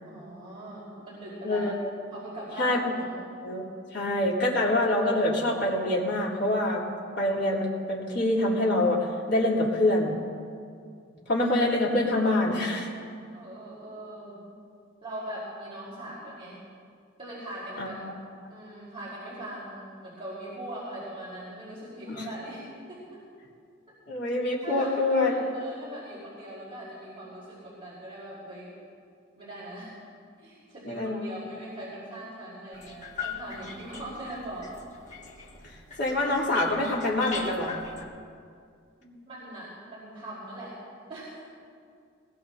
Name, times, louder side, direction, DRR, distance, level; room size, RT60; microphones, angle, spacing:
voice 1, 0.0-1.7 2.1-3.1 13.3-14.6 15.0-16.6 17.2-18.0 18.5-23.2 24.6-28.7 29.4-29.9 30.4-34.8 39.0-40.7 41.1-41.4, right 1 dB, 30° right, -9 dB, 4.7 m, -41 dB
voice 2, 3.9-6.8 7.2-10.1 11.3-12.9 17.8-18.1 22.1-22.3 24.1-25.4 30.8-31.4 36.0-37.8, left 1 dB, 60° left, -5 dB, 3.7 m, -25 dB
sound 1, 32.7-38.0, left 6 dB, 40° left, 1.8 m, -41 dB
21.5 x 21.0 x 2.9 m, 2.3 s
head